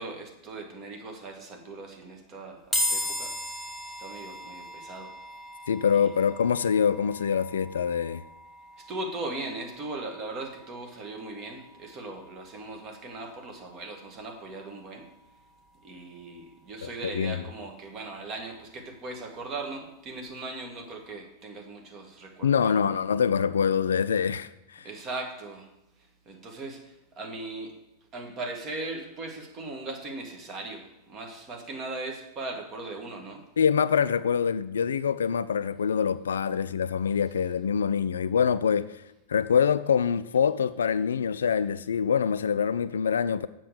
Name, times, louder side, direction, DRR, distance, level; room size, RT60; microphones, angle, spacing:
voice 1, 0.0-3.3 4.0-5.1 5.9-6.1 8.8-15.1 15.8-23.0 24.8-25.7 26.3-27.7 28.1-33.4, right 2 dB, 30° right, 1.8 m, -39 dB
sound 1, 2.7-16.1, left 1 dB, 5° left, 1.7 m, -38 dB
voice 2, 5.7-8.2 16.8-17.4 22.4-24.9 33.6-39.0 39.3-43.5, left 7 dB, 65° left, 0.3 m, -25 dB
7.6 x 6.1 x 6.7 m
figure-of-eight pair, 90°, 0 cm